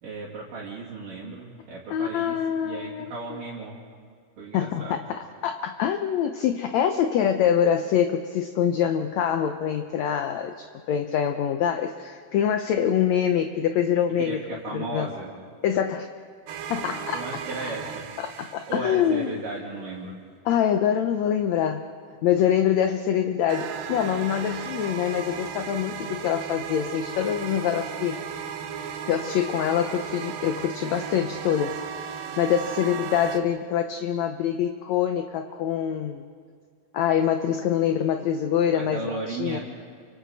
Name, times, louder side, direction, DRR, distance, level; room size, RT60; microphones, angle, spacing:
voice 1, 0.0-3.8 4.4-5.0 14.2-15.3 17.1-18.1 18.7-20.2 38.7-39.6, right 3 dB, 65° right, -6 dB, 4.1 m, -35 dB
voice 2, 1.9-3.1 4.5-14.4 14.7-15.1 15.6-16.1 16.7-17.2 18.2-19.3 20.5-21.9 22.2-28.2 29.1-36.2 36.9-39.6, left 9 dB, 75° left, 7 dB, 1.6 m, -25 dB
sound 1, 16.5-19.2 23.5-33.4, right 7 dB, 85° right, 2.9 m, -35 dB
30.0 x 25.0 x 4.1 m, 2.1 s
omnidirectional pair, 4.1 m